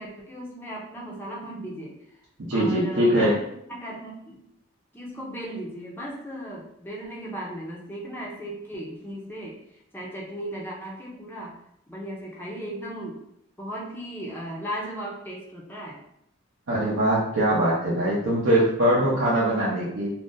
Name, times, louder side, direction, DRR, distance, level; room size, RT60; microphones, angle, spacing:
voice 1, 0.0-2.0 2.5-4.4 4.9-11.6 11.9-13.2 13.6-16.0, right 1 dB, 10° left, -4 dB, 0.5 m, -36 dB
voice 2, 2.5-3.3 16.7-20.1, right 1 dB, 75° right, -7 dB, 0.6 m, -22 dB
2.5 x 2.1 x 3.7 m, 0.75 s
head